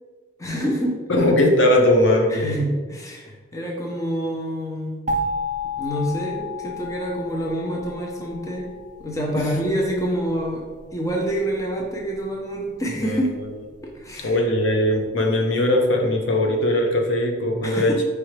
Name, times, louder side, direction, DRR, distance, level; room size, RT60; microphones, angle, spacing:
voice 1, 0.4-1.0 2.3-5.0 5.8-8.7 9.0-13.3 13.8-14.3 17.6-18.0, equal, 15° left, -1 dB, 0.6 m, -27 dB
voice 2, 1.1-2.6 9.4-9.5 13.0-13.2 14.2-17.9, left 1 dB, 80° left, 2 dB, 0.7 m, -19 dB
sound 1, 5.1-9.8, left 2 dB, 40° right, 0.4 m, -31 dB
4.8 x 3.4 x 3.2 m, 1.4 s
head